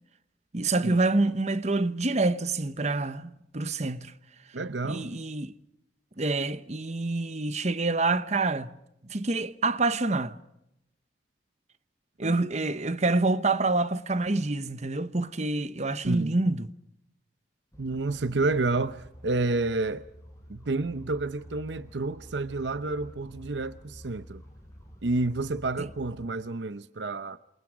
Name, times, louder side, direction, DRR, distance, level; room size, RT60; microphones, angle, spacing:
voice 1, 0.5-4.1 4.9-5.5 6.2-8.7 9.1-10.4 12.2-16.7 25.8-25.9, right 2 dB, 40° right, 1.0 m, -27 dB
voice 2, 4.5-5.1 12.2-12.4 16.0-16.4 17.8-20.1 20.5-24.4 25.0-27.4, right 3 dB, 80° right, 0.8 m, -29 dB
sound 1, 17.7-26.3, equal, 15° left, 6.1 m, -49 dB
28.5 x 27.5 x 5.0 m
head